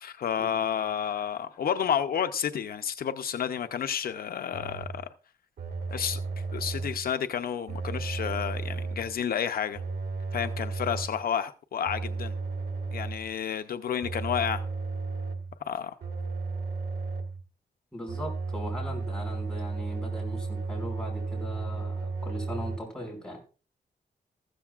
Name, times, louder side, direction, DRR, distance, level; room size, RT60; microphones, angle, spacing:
voice 1, 0.0-5.1 5.9-6.2 6.5-9.8 10.3-12.3 12.9-14.6 15.6-16.0, left 8 dB, 70° left, 8 dB, 0.6 m, -30 dB
sound 1, 4.5-5.0 5.6-7.1 7.7-9.1 9.7-11.2 11.8-13.3 14.0-15.5 16.0-17.4 18.1-22.8, right 4 dB, 90° right, 2.0 m, -34 dB
voice 2, 17.9-23.4, equal, 5° left, -1 dB, 5.3 m, -39 dB
14.5 x 13.0 x 2.4 m, 0.35 s
wide cardioid pair, 155°, 16 cm